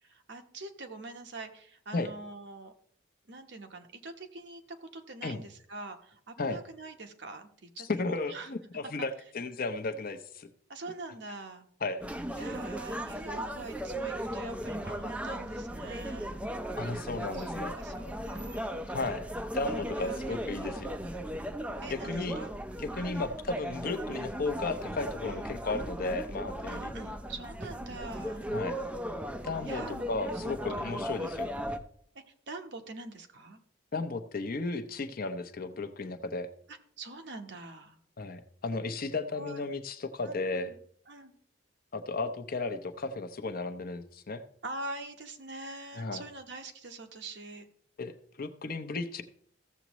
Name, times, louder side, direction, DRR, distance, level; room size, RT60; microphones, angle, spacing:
voice 1, 0.0-2.7 3.3-8.5 10.7-11.7 12.4-16.4 17.3-17.5 17.7-18.9 19.9-20.2 20.5-20.7 21.8-22.5 23.0-23.2 23.8-24.0 25.3-25.5 26.7-28.5 29.6-31.1 32.1-33.6 35.0-35.1 36.7-38.0 39.3-39.6 40.2-40.8 41.1-41.3 44.6-47.7, right 2 dB, 65° right, 6 dB, 1.1 m, -44 dB
voice 2, 7.8-10.5 11.8-12.0 12.3-12.4 16.8-17.8 18.9-19.3 19.5-20.9 21.9-22.4 22.8-26.9 28.5-28.8 29.4-29.8 30.1-31.5 33.9-36.5 38.2-40.7 41.9-44.4 45.9-46.2 48.0-49.2, left 3 dB, 50° left, 9 dB, 0.7 m, -34 dB
sound 1, 12.0-31.8, equal, 5° right, 0.5 m, -37 dB
15.0 x 7.2 x 3.1 m, 0.63 s
head